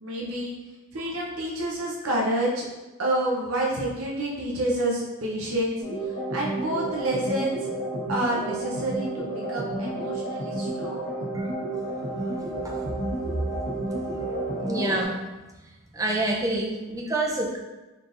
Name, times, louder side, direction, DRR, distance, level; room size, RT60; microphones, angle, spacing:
voice 1, 0.0-0.5 0.9-2.7 3.0-5.8 6.3-7.7 8.1-11.1, right 1 dB, 80° right, -3 dB, 0.7 m, -28 dB
sound 1, 5.8-15.1, right 1 dB, 55° left, 1.1 m, -31 dB
voice 2, 12.2-12.9 14.6-15.2 15.9-17.6, right 2 dB, 15° right, -1 dB, 0.5 m, -28 dB
4.3 x 3.4 x 2.5 m, 1.1 s
head